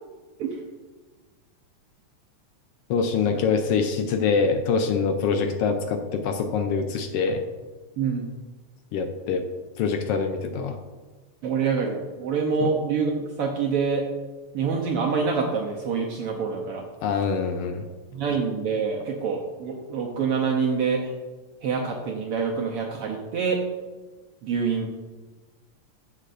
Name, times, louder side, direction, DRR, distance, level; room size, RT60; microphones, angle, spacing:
voice 1, 2.9-7.4 8.9-9.4 9.8-10.8 12.6-12.8 17.0-17.9, left 5 dB, 85° left, 6 dB, 1.3 m, -24 dB
voice 2, 8.0-8.3 11.4-14.0 14.5-16.8 18.1-21.1 21.6-23.6 24.4-24.9, right 5 dB, 70° right, 0 dB, 1.4 m, -26 dB
13.0 x 6.6 x 2.5 m, 1.3 s
omnidirectional pair, 3.3 m